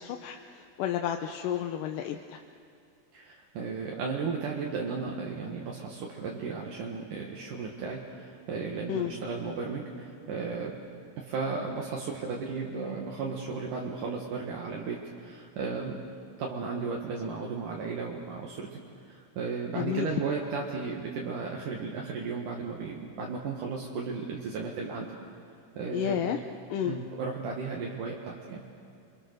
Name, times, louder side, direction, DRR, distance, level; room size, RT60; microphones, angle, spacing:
voice 1, 0.0-2.4 8.9-9.1 19.8-20.1 25.9-26.4 26.7-27.0, left 10 dB, 75° left, 4 dB, 2.3 m, -31 dB
voice 2, 3.1-10.8 11.2-16.0 16.4-18.8 19.1-25.1 25.8-26.3 26.8-28.7, right 4 dB, 65° right, -1 dB, 3.1 m, -35 dB
29.0 x 24.0 x 6.7 m, 2.6 s
omnidirectional pair, 4.1 m